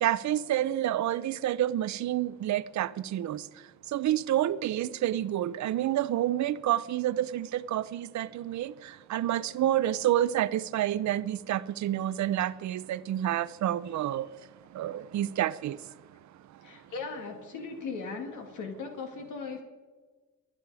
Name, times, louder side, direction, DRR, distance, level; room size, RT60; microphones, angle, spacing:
voice 1, 0.0-3.4 3.9-8.7 9.1-14.3 14.8-15.8, right 12 dB, 65° right, 0.7 m, -28 dB
voice 2, 16.6-19.6, left 4 dB, 80° left, 2.3 m, -38 dB
24.0 x 9.8 x 4.9 m
cardioid pair, 90°, 30 cm